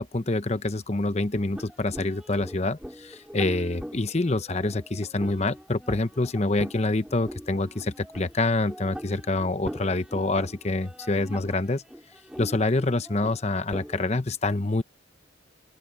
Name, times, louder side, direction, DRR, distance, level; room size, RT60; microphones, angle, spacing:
voice 1, 0.0-11.8 12.4-14.8, left 2 dB, 35° left, 0.8 m, -26 dB
sound 1, 1.5-14.0, equal, 5° right, 3.4 m, -42 dB
open air
head